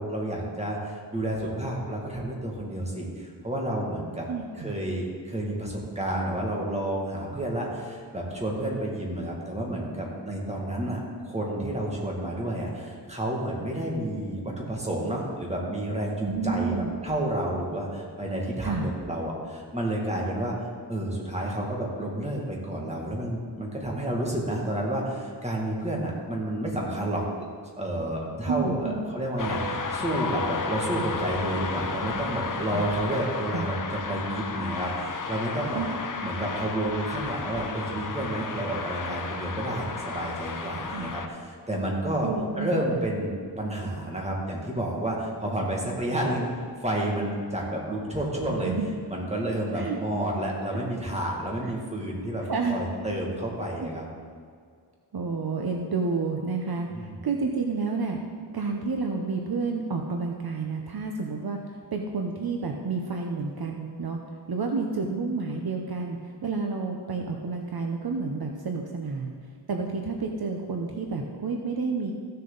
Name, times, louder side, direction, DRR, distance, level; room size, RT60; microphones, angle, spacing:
voice 1, 0.0-4.3 4.6-16.7 17.0-20.6 20.9-27.2 27.8-35.8 36.2-42.3 42.6-43.3 43.6-46.5 46.8-48.7 49.1-54.1 56.9-57.1, right 1 dB, 15° right, -2 dB, 2.1 m, -30 dB
voice 2, 4.3-4.8 16.2-16.9 18.6-18.9 28.5-29.1 32.7-32.8 33.5-33.7 35.7-36.0 40.9-41.1 42.2-42.7 48.6-48.9 49.7-50.0 51.6-51.7 52.5-52.8 53.8-53.9 55.1-58.2 58.5-64.2 64.5-69.3 69.7-72.1, right 4 dB, 60° right, 2 dB, 0.9 m, -30 dB
sound 1, 29.4-41.3, left 4 dB, 45° left, 0.8 m, -33 dB
15.0 x 6.7 x 4.0 m, 2.1 s
wide cardioid pair, 105°, 43 cm